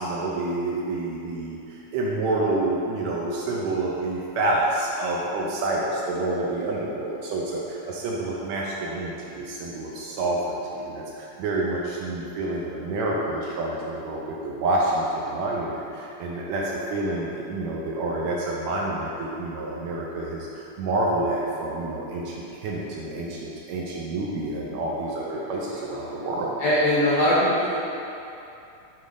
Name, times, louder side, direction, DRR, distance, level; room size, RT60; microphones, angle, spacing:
voice 1, 0.0-16.6 16.9-26.6, right 2 dB, 80° right, -3 dB, 1.8 m, -28 dB
voice 2, 26.0-26.3 26.6-27.8, left 1 dB, 65° left, -8 dB, 1.5 m, -22 dB
8.9 x 3.7 x 3.8 m, 2.8 s
omnidirectional pair, 3.6 m